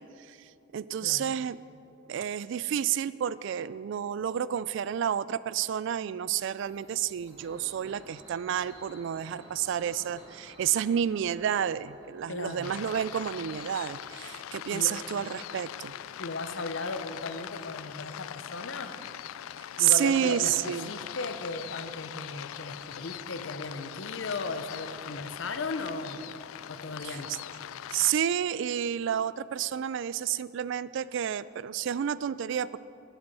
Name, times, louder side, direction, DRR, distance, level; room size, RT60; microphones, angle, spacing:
voice 1, 0.0-1.6 2.1-15.9 19.8-20.9 27.0-27.4 27.9-32.8, right 9 dB, 60° right, 18 dB, 0.3 m, -30 dB
voice 2, 1.0-1.3 12.3-12.7 14.7-14.9 16.2-18.9 19.8-26.2 26.7-27.3, left 3 dB, 60° left, 8 dB, 0.8 m, -36 dB
sound 1, 6.6-13.6, equal, 15° right, 2.9 m, -53 dB
sound 2, 12.6-28.1, left 10 dB, 80° left, 0.3 m, -41 dB
12.5 x 8.0 x 5.5 m, 2.8 s
head